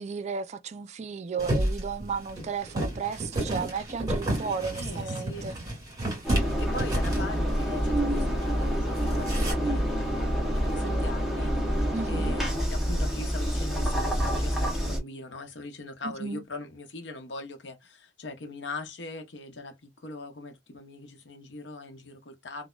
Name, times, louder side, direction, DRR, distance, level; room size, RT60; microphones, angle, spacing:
voice 1, 0.0-5.6 10.8-11.1 11.9-12.4 16.0-16.4, right 5 dB, 40° right, 0.3 m, -34 dB
sound 1, 1.4-7.6 7.9-8.0 8.3-8.6 9.0-9.5, right 1 dB, 20° right, 1.7 m, -31 dB
voice 2, 4.7-5.5 6.6-22.7, left 2 dB, 85° left, 0.8 m, -41 dB
Engine, 6.2-15.0, equal, ahead, 0.8 m, -27 dB
3.0 x 2.0 x 2.2 m
head